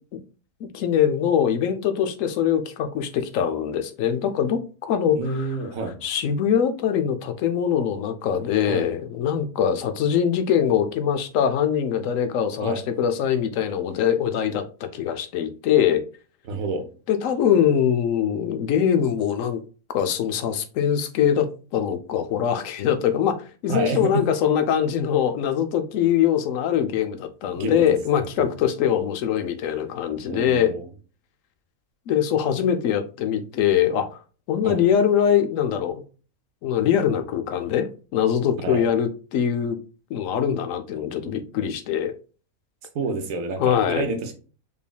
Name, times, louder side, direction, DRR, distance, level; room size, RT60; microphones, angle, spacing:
voice 1, 0.7-5.5 6.0-16.0 17.1-19.6 19.9-23.4 23.6-30.7 32.1-34.2 34.5-36.0 36.6-39.8 40.1-42.1 43.6-44.1, left 9 dB, 70° left, 9 dB, 1.0 m, -23 dB
voice 2, 5.1-6.0 8.7-8.9 12.6-12.8 16.4-16.9 23.7-24.3 27.6-27.8 28.4-28.5 30.3-30.9 34.6-34.8 38.6-38.9 42.9-44.3, right 3 dB, 75° right, 5 dB, 1.2 m, -28 dB
5.1 x 3.3 x 2.3 m, 0.37 s
omnidirectional pair, 1.5 m